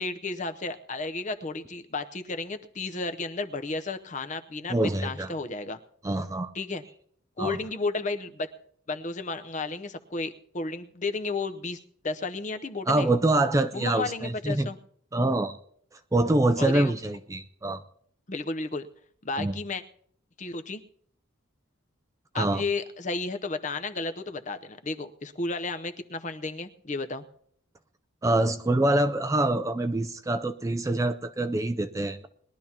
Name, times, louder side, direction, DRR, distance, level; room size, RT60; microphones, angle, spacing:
voice 1, 0.0-5.8 6.5-6.8 7.4-8.5 8.9-13.1 13.7-14.8 16.6-16.9 18.3-18.9 19.2-19.8 20.4-20.8 22.3-27.2, left 3 dB, 35° left, 8 dB, 0.7 m, -33 dB
voice 2, 4.7-5.3 6.0-6.5 7.4-7.6 12.9-14.7 15.1-15.6 15.9-17.8 19.4-19.5 22.3-22.6 28.2-32.3, right 2 dB, 15° right, 9 dB, 0.4 m, -25 dB
21.0 x 12.0 x 2.9 m, 0.63 s
head